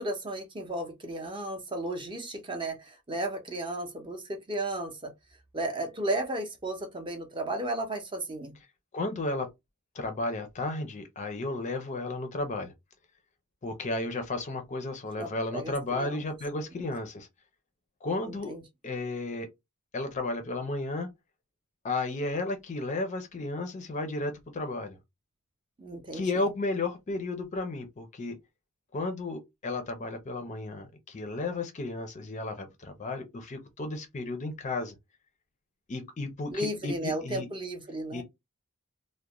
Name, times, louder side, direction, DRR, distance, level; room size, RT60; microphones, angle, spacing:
voice 1, 0.0-5.1 5.5-8.5 15.2-16.2 18.2-18.6 25.8-26.5 36.5-38.2, right 1 dB, 20° right, 0.6 m, -34 dB
voice 2, 8.9-9.5 9.9-12.7 13.6-17.3 18.0-18.5 18.8-19.5 19.9-21.1 21.8-25.0 26.1-28.4 28.9-34.9 35.9-37.5 38.1-38.2, left 2 dB, 35° left, 0.4 m, -33 dB
2.4 x 2.1 x 2.9 m
head